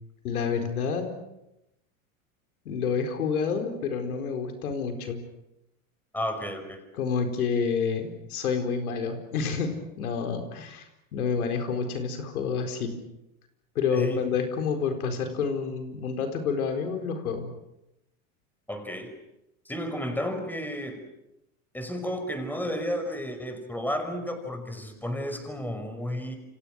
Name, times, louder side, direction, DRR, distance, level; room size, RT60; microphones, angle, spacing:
voice 1, 0.2-1.2 2.6-5.2 6.9-9.7 10.0-12.9 13.7-17.5, left 5 dB, 90° left, 5 dB, 4.4 m, -29 dB
voice 2, 6.1-6.8 13.9-14.2 18.7-19.1 19.7-21.0 21.7-26.4, equal, 5° left, 7 dB, 5.5 m, -32 dB
29.0 x 26.5 x 6.5 m, 0.89 s
hypercardioid pair, 105°, 43 cm